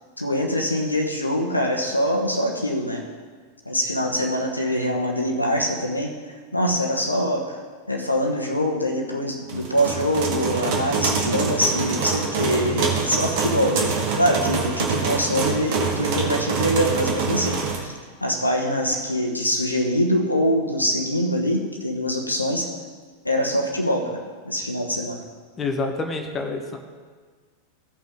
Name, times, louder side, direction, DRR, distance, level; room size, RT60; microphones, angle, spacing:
voice 1, 0.2-3.0 3.7-6.1 6.5-7.6 7.9-17.9 18.2-22.7 23.2-25.2, equal, 85° left, 2 dB, 1.2 m, -24 dB
sound 1, 9.5-17.8, right 5 dB, 50° right, 1.8 m, -25 dB
voice 2, 25.6-26.8, left 3 dB, 20° left, 3 dB, 1.1 m, -27 dB
16.5 x 5.7 x 3.7 m, 1.5 s
figure-of-eight pair, 90°, 0 cm